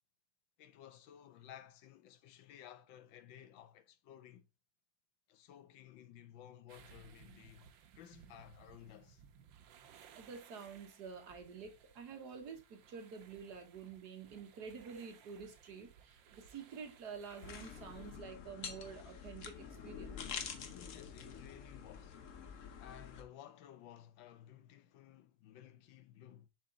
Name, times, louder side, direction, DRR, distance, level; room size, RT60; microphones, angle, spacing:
voice 1, 0.6-4.5 5.3-9.2 20.7-22.2 22.8-26.5, left 11 dB, 80° left, 1.5 m, -56 dB
sound 1, 6.7-18.2, right 8 dB, 80° right, 1.5 m, -62 dB
voice 2, 10.2-20.2, right 6 dB, 60° right, 1.7 m, -49 dB
sound 2, 17.4-23.2, left 7 dB, 55° left, 1.0 m, -47 dB
7.3 x 4.0 x 3.6 m
omnidirectional pair, 2.0 m